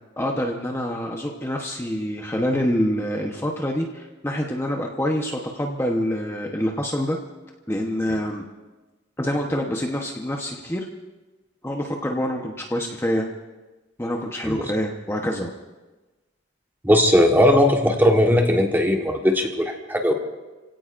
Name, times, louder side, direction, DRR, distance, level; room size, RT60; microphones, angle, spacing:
voice 1, 0.2-7.2 7.7-8.5 9.2-10.9 11.6-13.3 14.0-15.5, equal, 15° left, 0 dB, 1.0 m, -26 dB
voice 2, 16.8-20.1, left 1 dB, 10° right, 2 dB, 1.4 m, -18 dB
29.0 x 17.0 x 2.6 m, 1.2 s
head